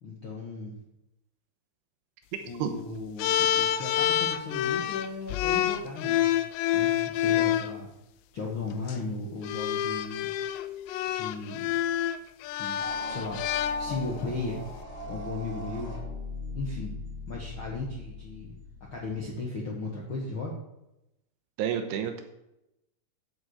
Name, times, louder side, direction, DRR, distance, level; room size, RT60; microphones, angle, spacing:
voice 1, 0.0-0.7 2.4-6.3 6.7-7.9 8.3-10.3 11.1-11.7 12.5-12.8 13.1-14.6 15.1-15.9 16.5-16.9 17.3-18.6 18.9-20.5, left 3 dB, 65° left, -3 dB, 1.2 m, -36 dB
sound 1, 3.2-7.7 8.7-8.9 9.4-14.3, left 11 dB, 90° left, 2.8 m, -28 dB
sound 2, 12.8-19.3, left 3 dB, 35° left, 2.6 m, -40 dB
voice 2, 21.6-22.2, right 9 dB, 80° right, 6 dB, 3.1 m, -29 dB
8.7 x 6.0 x 7.9 m, 0.88 s
omnidirectional pair, 4.8 m